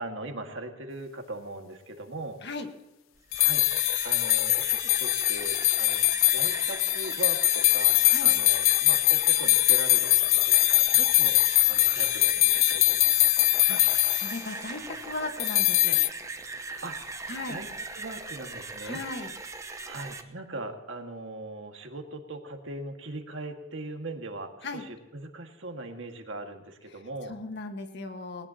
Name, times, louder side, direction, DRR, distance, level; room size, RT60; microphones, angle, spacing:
voice 1, 0.0-2.4 3.4-3.7 4.0-11.4 11.7-13.1 16.8-17.2 17.5-19.0 19.8-27.3, right 2 dB, 65° right, 4 dB, 1.9 m, -40 dB
sound 1, 3.2-20.2, right 3 dB, 15° right, 0.9 m, -39 dB
sound 2, 3.3-14.4 15.4-16.1, left 18 dB, 80° left, 0.4 m, -22 dB
voice 2, 13.7-16.0 17.3-17.6 18.8-19.3 24.6-24.8 26.9-27.0 27.3-28.5, left 2 dB, 60° left, 6 dB, 1.5 m, -37 dB
19.5 x 19.0 x 2.9 m, 1.0 s
head